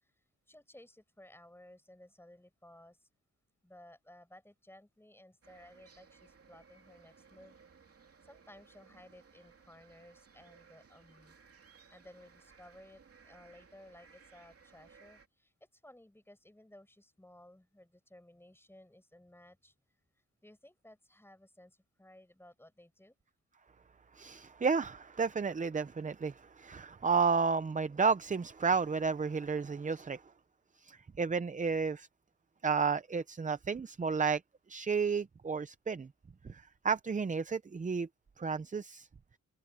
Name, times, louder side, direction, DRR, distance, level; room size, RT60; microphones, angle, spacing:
voice 1, 0.0-3.1 3.6-7.6 8.2-11.4 11.9-19.7 20.4-23.2, left 1 dB, 5° left, 6.2 m, -58 dB
sound 1, 5.4-15.3, right 5 dB, 50° right, 2.7 m, -61 dB
voice 2, 24.2-30.2 30.8-32.1 32.6-34.4 34.7-36.1 36.4-38.1 38.4-39.1, right 5 dB, 25° right, 0.5 m, -32 dB
wide cardioid pair, 170°, 31 cm